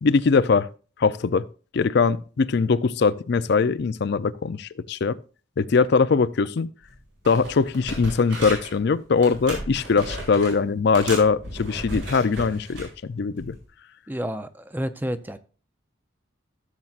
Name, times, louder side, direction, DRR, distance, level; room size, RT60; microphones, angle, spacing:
voice 1, 0.0-0.7 1.0-1.5 1.7-5.2 5.6-6.7 7.3-13.6, left 5 dB, 60° left, 0.4 m, -21 dB
sound 1, 6.8-7.0 7.2-8.8 9.2-10.6 10.9-12.9 13.4-13.6, right 1 dB, 85° right, 5.0 m, -35 dB
voice 2, 14.1-15.4, equal, 10° right, 0.5 m, -30 dB
14.5 x 7.3 x 2.5 m
head